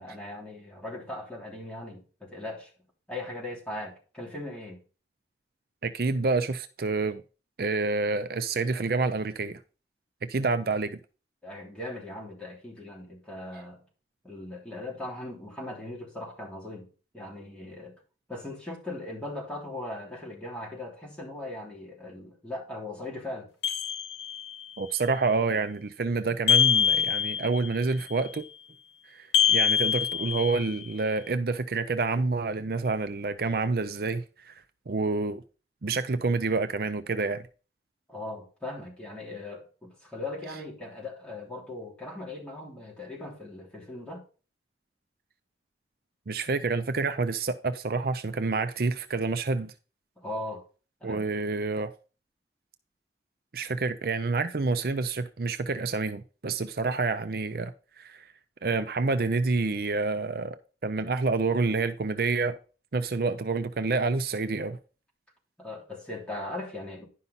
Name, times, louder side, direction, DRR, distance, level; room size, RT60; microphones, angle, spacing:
voice 1, 0.0-2.7 3.1-4.8 11.4-13.8 14.2-16.9 17.1-17.9 18.3-23.5 32.6-32.7 38.1-44.2 50.2-50.6 51.0-51.2 65.6-67.0, left 2 dB, 5° left, 3.3 m, -39 dB
voice 2, 5.8-7.2 7.6-9.6 10.2-11.0 24.8-28.5 29.1-34.6 34.9-35.4 35.8-37.5 46.3-49.7 51.0-51.9 53.5-58.3 58.6-62.6 62.9-64.8, right 3 dB, 55° right, 0.5 m, -28 dB
sound 1, 23.6-24.6 26.5-27.7 29.3-30.8, left 8 dB, 85° left, 1.7 m, -25 dB
11.0 x 5.6 x 4.1 m
head